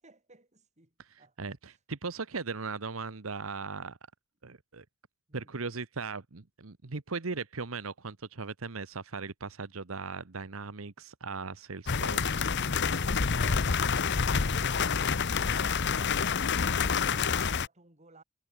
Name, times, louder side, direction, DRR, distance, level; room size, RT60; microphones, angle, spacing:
voice 1, 0.0-1.5 5.3-5.6 12.3-18.2, right 3 dB, 35° right, 5.9 m, -56 dB
voice 2, 1.0-4.0 4.4-4.8 5.3-12.4, right 4 dB, 85° right, 1.2 m, -38 dB
sound 1, 11.9-17.7, left 5 dB, 55° left, 0.9 m, -28 dB
head